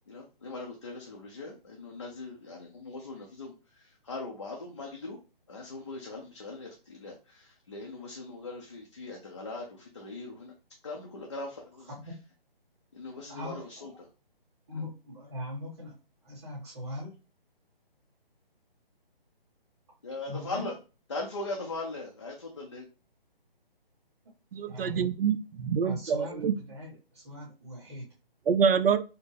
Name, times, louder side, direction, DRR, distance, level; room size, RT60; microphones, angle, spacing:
voice 1, 0.1-5.2 5.5-10.5 10.8-11.9 12.9-14.1 14.7-14.8 20.0-20.7 21.1-22.9, left 3 dB, 30° left, 0.5 m, -40 dB
voice 2, 13.3-13.9 14.7-15.9 16.2-17.1 20.3-20.7 24.7-25.1 25.8-28.1, left 1 dB, 25° right, 1.5 m, -40 dB
voice 3, 24.5-26.5 28.5-29.0, right 7 dB, 70° right, 0.5 m, -26 dB
4.3 x 2.0 x 3.3 m
hypercardioid pair, 160°, 30 cm